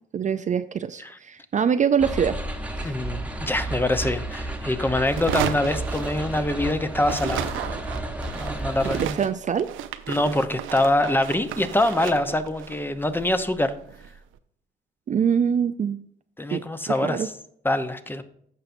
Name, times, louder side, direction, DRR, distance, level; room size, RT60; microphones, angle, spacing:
voice 1, 0.1-2.4 2.8-2.9 8.8-9.7 15.1-16.0 16.5-17.3, right 7 dB, 40° right, 10 dB, 0.4 m, -24 dB
sound 1, 2.0-9.1, right 1 dB, 5° right, 1.0 m, -32 dB
voice 2, 2.8-7.6 8.3-9.2 10.1-13.7 16.4-17.3 17.6-18.2, left 1 dB, 10° left, 10 dB, 0.7 m, -24 dB
sound 2, 5.1-6.7 7.0-14.2, right 10 dB, 85° right, 0.6 m, -33 dB
14.5 x 5.7 x 2.6 m, 0.69 s
cardioid pair, 90°, 20 cm